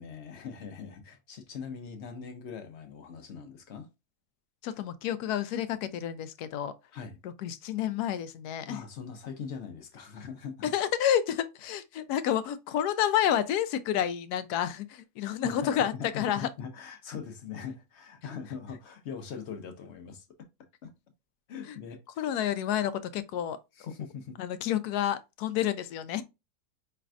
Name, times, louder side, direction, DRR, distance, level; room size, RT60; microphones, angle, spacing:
voice 1, 0.0-3.9 6.9-7.2 8.7-10.7 15.4-20.2 20.8-20.9 21.5-22.3 23.8-24.4, left 6 dB, 55° left, 0.8 m, -41 dB
voice 2, 4.6-6.7 7.2-8.8 10.6-16.5 21.7-21.8 22.2-23.6 24.4-26.2, left 10 dB, 80° left, 1.1 m, -29 dB
5.0 x 3.3 x 2.4 m
omnidirectional pair, 1.7 m